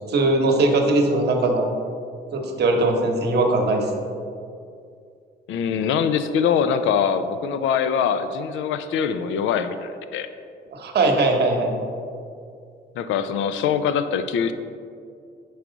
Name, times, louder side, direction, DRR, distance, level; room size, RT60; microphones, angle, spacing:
voice 1, 0.1-1.7 2.3-4.1 10.7-11.8, right 2 dB, 55° right, 2 dB, 1.0 m, -20 dB
voice 2, 5.5-10.3 13.0-14.5, left 7 dB, 80° left, 11 dB, 0.4 m, -23 dB
6.0 x 4.7 x 3.9 m, 2.4 s
cardioid pair, 90°, 20 cm